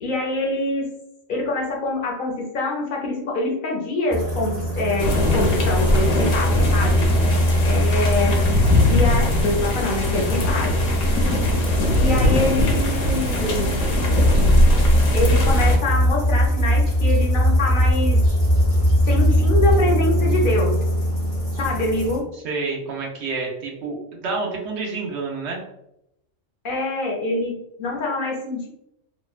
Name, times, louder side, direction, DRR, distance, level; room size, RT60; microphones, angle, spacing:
voice 1, 0.0-0.9 1.3-7.0 7.6-8.4 8.9-10.8 12.0-13.8 15.1-18.2 19.1-20.7 21.6-22.2 26.6-28.7, left 2 dB, 55° left, -1 dB, 0.7 m, -25 dB
sound 1, 4.1-22.2, equal, 30° right, 1.1 m, -24 dB
sound 2, 5.0-15.8, left 1 dB, 75° left, 1.0 m, -20 dB
sound 3, 13.9-19.7, equal, 90° right, 1.2 m, -20 dB
voice 2, 22.3-25.6, right 3 dB, 65° right, -1 dB, 0.9 m, -28 dB
2.9 x 2.1 x 2.3 m, 0.81 s
omnidirectional pair, 1.3 m